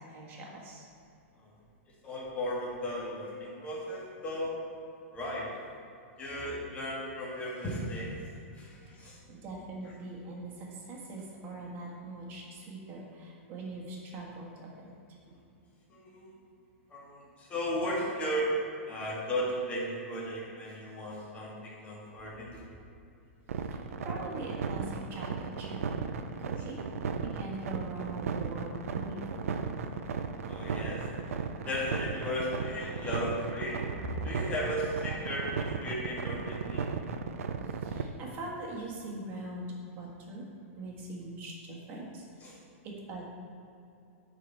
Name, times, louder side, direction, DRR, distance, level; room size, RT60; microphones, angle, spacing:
voice 1, 0.1-0.8 9.0-14.9 23.7-25.8 26.4-26.8 27.2-29.7 37.8-39.7 40.0-40.4 40.8-42.6 42.8-43.2, right 2 dB, 30° right, -3 dB, 1.5 m, -42 dB
voice 2, 2.0-4.6 5.1-5.5 6.2-8.2 8.5-9.2 15.9-16.3 16.9-18.5 18.9-22.6 24.0-24.1 30.5-31.1 31.7-33.8 34.2-36.8 42.4-42.5, equal, 15° left, -5 dB, 1.6 m, -35 dB
sound 1, 23.5-38.0, right 6 dB, 90° right, 0.5 m, -35 dB
9.6 x 4.2 x 4.5 m, 2.7 s
supercardioid pair, 155°, 7 cm